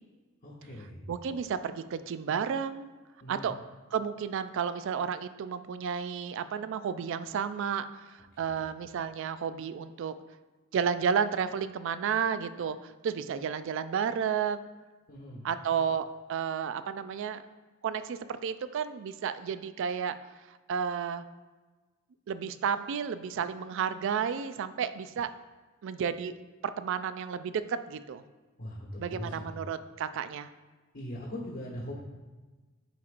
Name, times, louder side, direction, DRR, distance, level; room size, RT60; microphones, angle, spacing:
voice 1, 0.4-1.0 3.2-3.5 8.3-8.6 15.1-15.4 28.6-29.5 30.9-32.0, left 1 dB, 55° left, -4 dB, 1.1 m, -41 dB
voice 2, 1.1-2.9 3.3-3.6 3.9-10.1 10.7-14.7 15.4-17.4 17.8-20.1 20.5-21.3 22.3-25.3 25.8-26.3 26.6-28.2 29.0-30.5, right 7 dB, 65° right, 12 dB, 0.3 m, -32 dB
10.0 x 4.4 x 2.5 m, 1.3 s
head